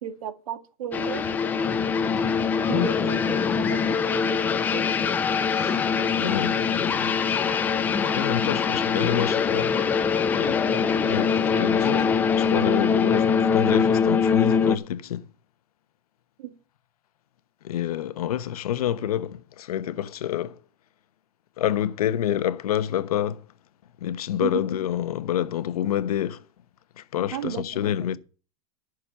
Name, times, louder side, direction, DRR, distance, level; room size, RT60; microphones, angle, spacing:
voice 1, 0.0-1.3 2.7-3.8 4.1-4.4 4.7-4.8 10.7-10.8 16.4-16.6 24.4-24.6 27.3-27.6, right 10 dB, 65° right, 1.9 m, -33 dB
sound 1, 0.9-14.8, left 6 dB, 10° left, 0.5 m, -23 dB
voice 2, 2.7-3.2 5.5-5.9 6.2-7.1 7.9-9.7 10.3-10.6 11.0-15.2 17.6-20.6 21.6-23.4 24.0-26.4 27.0-28.2, left 11 dB, 85° left, 1.1 m, -28 dB
11.5 x 6.4 x 6.8 m
supercardioid pair, 170°, 19 cm